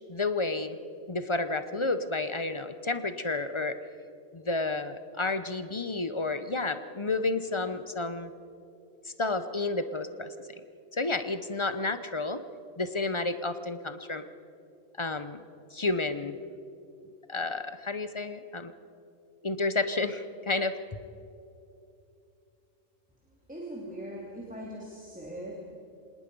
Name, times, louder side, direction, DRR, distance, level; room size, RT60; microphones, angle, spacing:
voice 1, 0.1-0.8 1.1-3.8 4.3-8.3 9.0-10.3 10.9-12.4 12.8-14.2 15.0-15.4 15.7-16.4 17.3-18.7 19.4-20.8, left 3 dB, 30° left, 11 dB, 0.6 m, -31 dB
voice 2, 23.5-25.7, equal, 5° right, -3 dB, 2.6 m, -40 dB
26.0 x 19.0 x 5.4 m, 2.6 s
omnidirectional pair, 1.4 m